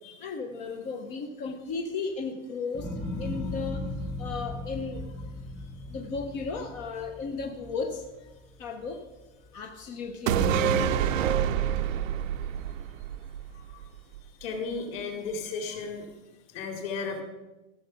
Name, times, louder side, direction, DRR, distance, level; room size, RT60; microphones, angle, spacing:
voice 1, 0.2-2.9 3.2-3.9 4.2-5.0 5.9-8.0 8.6-9.0 9.5-11.1, left 4 dB, 20° left, 4 dB, 0.4 m, -35 dB
sound 1, 2.7-9.1 9.5-10.1, left 1 dB, ahead, 0.9 m, -37 dB
sound 2, 10.3-13.8 14.2-14.3, right 9 dB, 80° right, 0.7 m, -27 dB
voice 2, 14.4-16.1 16.5-17.2, left 4 dB, 45° left, 3 dB, 2.5 m, -34 dB
14.5 x 6.7 x 5.6 m, 1.1 s
supercardioid pair, 165°, 39 cm